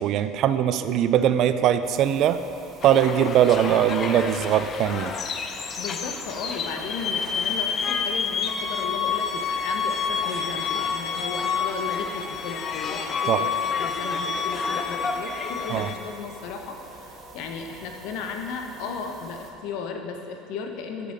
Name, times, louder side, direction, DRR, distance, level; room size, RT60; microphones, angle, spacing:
voice 1, 0.0-2.4 2.8-5.1 13.3-13.4 15.7-15.9, right 10 dB, 55° right, 11 dB, 0.3 m, -21 dB
sound 1, 1.8-19.5, right 3 dB, 35° right, 0.8 m, -47 dB
sound 2, 2.8-15.9, left 6 dB, 40° left, 0.5 m, -29 dB
voice 2, 5.8-21.1, left 5 dB, 70° left, 4 dB, 0.8 m, -35 dB
7.5 x 6.9 x 3.8 m, 2.7 s
supercardioid pair, 110°, 0 cm